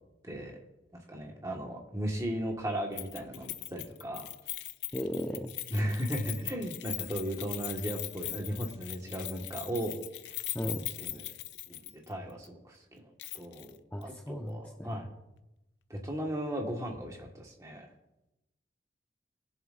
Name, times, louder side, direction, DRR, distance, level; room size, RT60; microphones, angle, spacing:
voice 1, 0.2-0.6 1.1-4.3 5.7-10.0 10.6-11.3 11.7-15.1 15.9-17.9, equal, 20° right, 0 dB, 1.5 m, -36 dB
Keys jangling, 3.0-12.1 12.4-12.5 13.2-13.7 14.0-14.1, left 15 dB, 80° left, 0.5 m, -40 dB
voice 2, 4.9-5.5 10.5-10.8 13.9-14.9, equal, 10° left, 2 dB, 0.6 m, -36 dB
22.0 x 7.4 x 2.5 m, 0.94 s
head